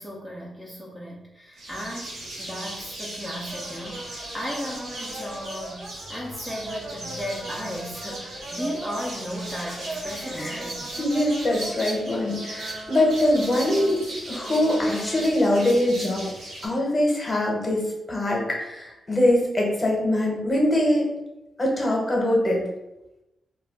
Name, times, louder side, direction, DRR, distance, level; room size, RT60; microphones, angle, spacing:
voice 1, 0.0-10.9, equal, 5° right, -4 dB, 0.6 m, -35 dB
sound 1, 1.6-16.7, right 1 dB, 85° right, 0.9 m, -38 dB
sound 2, 3.5-11.8 12.1-15.4, right 1 dB, 55° right, 0.5 m, -39 dB
voice 2, 11.0-16.3 16.6-21.1 21.6-22.6, left 1 dB, 30° left, -2 dB, 1.0 m, -23 dB
2.3 x 2.2 x 3.6 m, 0.94 s
cardioid pair, 65°, 0 cm